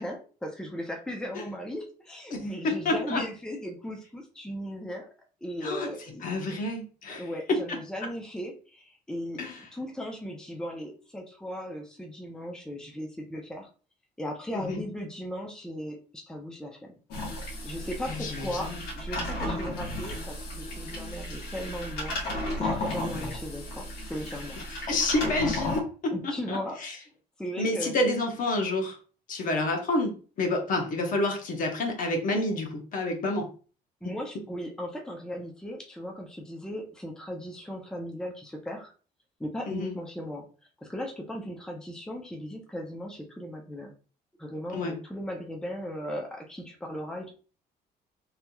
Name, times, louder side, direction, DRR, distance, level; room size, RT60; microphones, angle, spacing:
voice 1, 0.0-5.1 5.4-6.2 7.2-9.4 9.7-13.7 14.2-16.9 17.6-22.1 22.6-24.6 26.1-26.8 27.4-27.9 34.0-38.9 39.4-40.5 40.8-43.9 44.4-47.3, equal, 5° left, 0 dB, 0.6 m, -37 dB
voice 2, 2.3-3.2 5.6-5.9 6.2-7.8 9.4-9.6 14.5-14.8 18.1-18.8 23.1-23.3 24.7-27.0 27.6-29.0 29.3-33.5 34.0-34.1 39.7-40.0 44.7-45.0, left 2 dB, 50° left, 2 dB, 0.9 m, -29 dB
sound 1, 17.1-25.8, left 1 dB, 75° left, 1.4 m, -34 dB
3.3 x 2.9 x 2.3 m, 0.38 s
cardioid pair, 110°, 17 cm